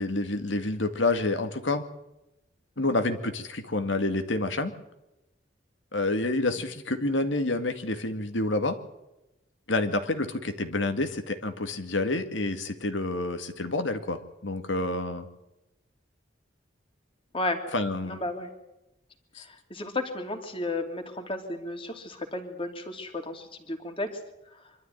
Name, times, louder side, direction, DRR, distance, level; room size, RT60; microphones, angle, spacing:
voice 1, 0.0-1.8 2.8-4.7 5.9-8.8 9.7-15.3 17.7-18.2 19.4-19.5, left 2 dB, 90° left, 8 dB, 2.2 m, -28 dB
voice 2, 18.0-18.5 19.4-24.2 24.5-24.6, left 2 dB, 30° left, 5 dB, 2.8 m, -33 dB
25.0 x 13.0 x 9.3 m, 0.93 s
head